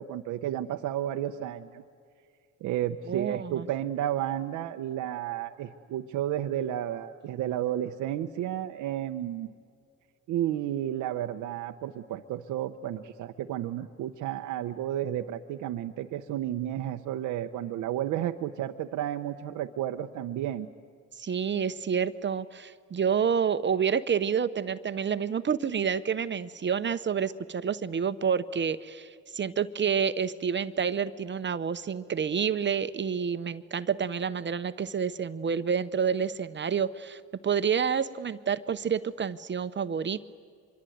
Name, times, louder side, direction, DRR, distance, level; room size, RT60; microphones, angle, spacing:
voice 1, 0.0-1.8 2.6-9.5 10.3-20.7, right 11 dB, 90° right, 5 dB, 0.8 m, -32 dB
voice 2, 3.1-3.7 21.2-40.3, right 7 dB, 40° right, 12 dB, 0.8 m, -29 dB
25.0 x 23.5 x 9.3 m, 2.2 s
cardioid pair, 90°, 30 cm